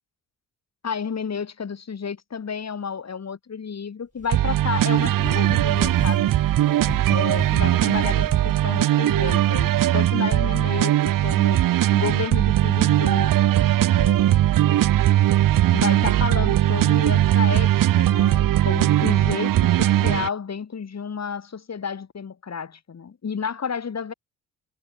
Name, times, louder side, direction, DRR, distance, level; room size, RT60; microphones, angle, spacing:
voice 1, 0.8-6.3 7.1-11.6 11.9-13.3 13.6-14.6 15.7-24.1, left 6 dB, 50° left, 5.6 m, -31 dB
sound 1, 4.2-8.5, right 2 dB, 20° right, 5.4 m, -35 dB
sound 2, 4.3-20.3, right 13 dB, 70° right, 2.0 m, -19 dB
hypercardioid pair, 45°, 34 cm